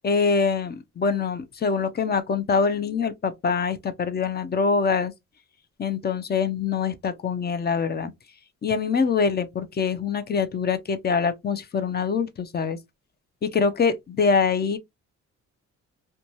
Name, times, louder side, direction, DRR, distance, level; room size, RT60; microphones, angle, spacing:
voice 1, 0.0-5.1 5.8-8.1 8.6-12.8 13.4-14.8, left 5 dB, 35° left, 0.5 m, -24 dB
2.5 x 2.2 x 3.0 m
cardioid pair, 90°, 30 cm